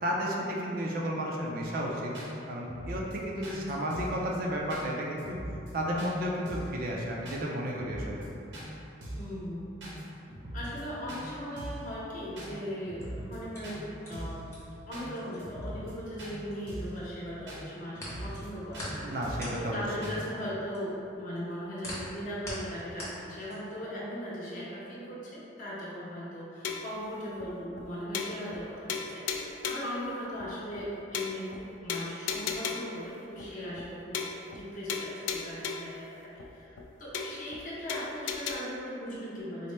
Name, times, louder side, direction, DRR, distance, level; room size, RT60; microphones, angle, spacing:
voice 1, 0.0-2.1 2.5-5.4 5.7-8.3 19.0-20.1, equal, 45° right, -2 dB, 0.4 m, -32 dB
sound 1, 1.6-1.7 2.1-2.3 2.6-3.2 3.4-3.6 3.9-4.2 4.7-4.9 5.2-5.7 6.0-6.1 6.5-6.8 7.3-7.4 7.7-8.3 8.5-8.7 9.0-9.3 9.8-10.0 10.3-10.8 11.1-11.2 11.6-11.9 12.4-12.5 12.8-13.4 13.6-13.8 14.1-14.4 14.9-15.1 15.4-15.9 16.2-16.3 16.7-17.0 17.5-17.6 17.9-18.5 18.7-18.9 19.2-19.5 20.0-20.2, right 1 dB, 75° right, 0.8 m, -41 dB
voice 2, 3.5-3.9 9.1-9.8 10.5-14.5 14.9-34.2 34.5-39.7, equal, 40° left, -8 dB, 0.8 m, -39 dB
sound 2, 13.0-17.0 17.3-23.9, left 1 dB, 15° left, 0.8 m, -44 dB
sound 3, 26.6-27.0 27.4-27.5 27.8-27.9 28.1-28.6 28.9-29.9 30.4-30.5 30.8-30.9 31.1-31.6 31.9-33.0 33.4-33.5 33.8-33.9 34.1-34.6 34.9-36.0 36.4-36.5 36.8-36.9 37.1-37.6 37.9-38.6, left 6 dB, 75° left, 0.3 m, -35 dB
4.1 x 2.0 x 3.2 m, 2.8 s
head